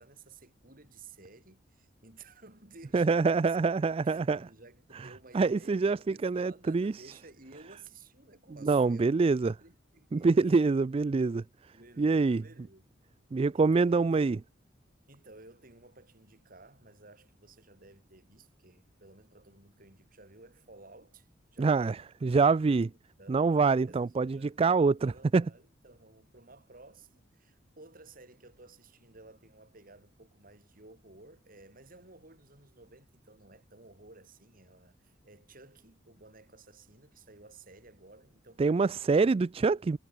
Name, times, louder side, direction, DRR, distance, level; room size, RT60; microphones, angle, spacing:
voice 1, 0.0-3.5 3.8-10.6 11.7-13.0 13.5-14.2 15.1-22.1 23.2-23.4 23.9-39.2, right 3 dB, 50° right, 7.1 m, -55 dB
voice 2, 2.9-4.4 5.3-6.9 8.6-9.5 10.1-11.4 12.0-12.4 13.3-14.4 21.6-22.9 23.3-25.4 38.6-40.0, right 4 dB, 30° right, 0.3 m, -25 dB
head